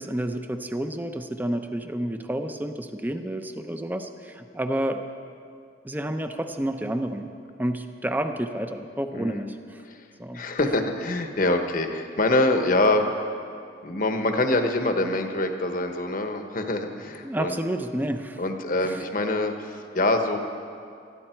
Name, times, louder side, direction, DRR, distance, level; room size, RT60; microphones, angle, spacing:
voice 1, 0.0-5.0 5.8-7.3 7.6-9.8 10.2-10.5 17.2-18.4 18.8-18.9, right 1 dB, 10° right, 7 dB, 0.7 m, -30 dB
voice 2, 10.3-13.1 13.8-17.5 18.4-20.4, left 2 dB, 50° left, 5 dB, 1.2 m, -25 dB
20.0 x 13.5 x 4.6 m, 2.4 s
head